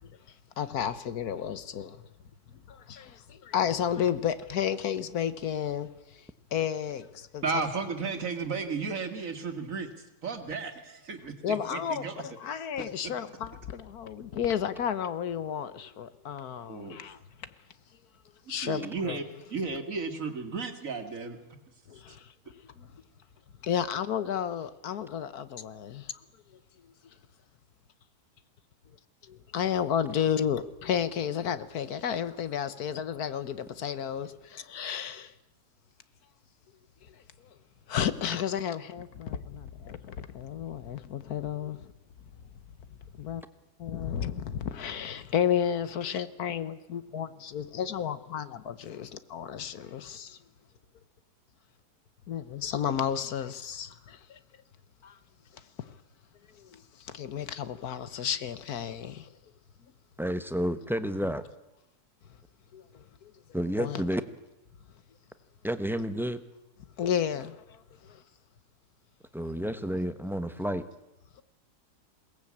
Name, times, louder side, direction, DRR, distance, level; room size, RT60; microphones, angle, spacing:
voice 1, 0.6-2.0 2.7-5.9 6.5-7.4 11.4-17.2 18.5-19.2 21.9-22.3 22.8-22.9 23.6-26.0 29.3-34.3 34.7-35.3 37.9-38.8 39.2-41.8 43.3-43.4 43.8-50.4 52.3-54.4 55.0-55.2 55.8-55.9 56.6-59.3 62.7-62.8 63.2-63.3 63.8-64.0 67.0-68.2, left 8 dB, 70° left, 1.5 m, -32 dB
voice 2, 7.4-9.9 10.2-12.2 12.4-12.5 12.8-13.1 16.7-17.0 18.5-19.2 19.5-21.4, right 4 dB, 55° right, 2.4 m, -34 dB
voice 3, 60.2-61.5 63.5-64.2 65.6-66.4 69.3-70.8, equal, ahead, 0.6 m, -30 dB
21.5 x 18.5 x 8.6 m
omnidirectional pair, 1.7 m